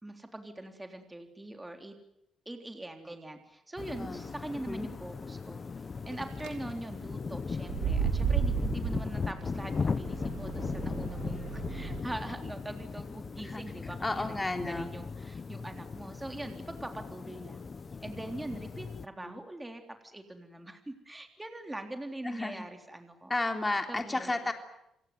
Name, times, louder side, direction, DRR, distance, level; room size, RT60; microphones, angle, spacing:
voice 1, 0.0-2.0 2.5-5.6 6.0-17.7 18.0-23.3 23.9-24.3, right 1 dB, 10° right, 5 dB, 3.6 m, -42 dB
sound 1, 3.8-19.1, left 4 dB, 35° left, 1.1 m, -38 dB
sound 2, 6.1-6.5 7.6-12.0, right 7 dB, 90° right, 3.4 m, -33 dB
voice 2, 14.0-14.9 19.2-19.3 22.2-22.6 23.3-24.5, left 2 dB, 20° left, 5 dB, 3.5 m, -32 dB
28.0 x 18.0 x 9.5 m, 0.81 s
cardioid pair, 90°, 0 cm